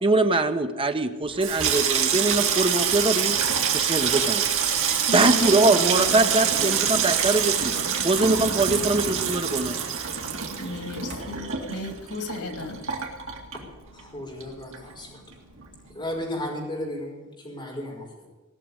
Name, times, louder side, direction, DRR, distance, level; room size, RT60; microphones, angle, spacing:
voice 1, 0.0-3.4 3.7-4.5 5.1-7.7 8.0-9.8, right 2 dB, 25° right, 7 dB, 0.9 m, -23 dB
Water tap faucet / Sink (filling or washing), 1.2-14.1 14.4-15.1 15.3-15.6, right 7 dB, 60° right, 2.2 m, -25 dB
voice 2, 5.1-6.9 10.6-12.9, left 1 dB, 90° left, 4 dB, 2.7 m, -34 dB
voice 3, 13.9-15.2 15.9-18.3, left 1 dB, 20° left, -2 dB, 4.9 m, -34 dB
18.0 x 6.7 x 9.6 m, 1.2 s
head